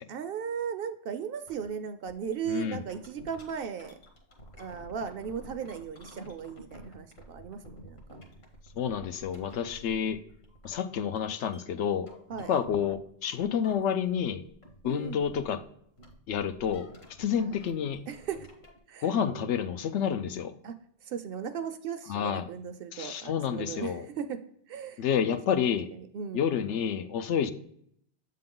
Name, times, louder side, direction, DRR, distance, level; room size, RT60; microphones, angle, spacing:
voice 1, 0.1-3.9 4.6-8.0 12.3-12.6 14.8-15.2 17.3-17.6 18.1-18.5 18.9-19.1 19.4-19.5 20.6-20.8 21.1-24.4 24.7-25.0 26.1-26.5, right 7 dB, 65° right, 9 dB, 0.7 m, -37 dB
sound 1, 1.5-1.7 2.1-13.1 13.4-14.2 14.4-18.8, equal, 65° left, 1.5 m, -51 dB
voice 2, 2.5-2.8 8.8-10.2 10.6-12.1 12.5-14.4 14.8-15.6 16.3-16.9 17.2-18.0 19.0-20.5 22.1-22.5 22.9-24.1 25.0-25.9 26.3-27.5, left 8 dB, 85° left, 10 dB, 0.9 m, -29 dB
7.7 x 3.8 x 3.7 m, 0.68 s
omnidirectional pair, 1.2 m